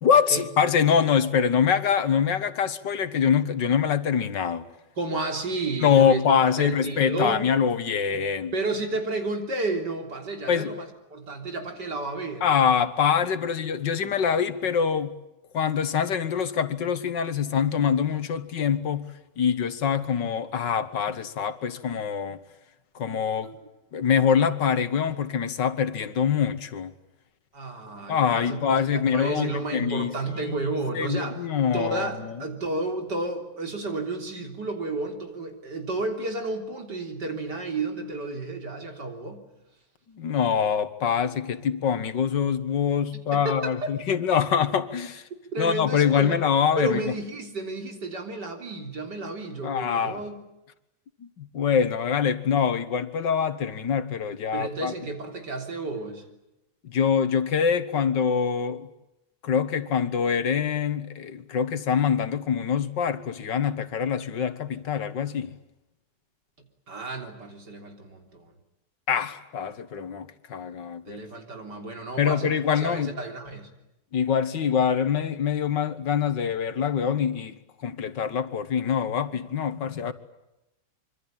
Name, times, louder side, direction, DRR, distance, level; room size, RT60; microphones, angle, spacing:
voice 1, 0.0-4.7 5.8-8.5 10.5-10.7 12.4-15.1 15.5-19.1 19.4-22.4 23.0-23.5 23.9-26.9 28.1-30.1 31.0-32.1 40.1-45.2 45.6-47.1 49.6-50.2 51.2-54.9 56.8-58.9 59.4-65.6 69.1-71.2 72.2-73.1 74.1-77.6 77.8-80.1, left 7 dB, 75° left, 2.1 m, -24 dB
voice 2, 5.0-7.5 8.5-12.5 23.4-23.6 27.5-28.6 28.9-31.4 31.7-39.4 43.3-43.9 45.5-46.4 46.8-50.4 54.5-56.3 66.9-68.5 71.1-73.7, right 2 dB, 65° right, 4.2 m, -32 dB
25.5 x 24.5 x 8.9 m
omnidirectional pair, 1.9 m